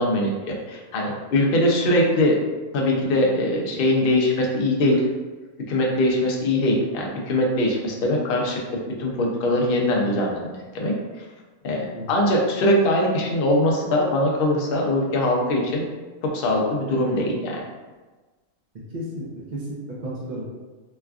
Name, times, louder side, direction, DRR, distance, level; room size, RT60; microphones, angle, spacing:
voice 1, 0.0-2.4 2.7-5.1 5.7-8.6 9.0-10.5 10.7-10.9 11.6-15.8 16.2-17.6, left 1 dB, 65° left, -1 dB, 0.5 m, -22 dB
voice 2, 18.9-19.3 19.5-20.4, right 1 dB, 65° right, -5 dB, 0.4 m, -33 dB
3.2 x 2.3 x 2.3 m, 1.3 s
omnidirectional pair, 1.5 m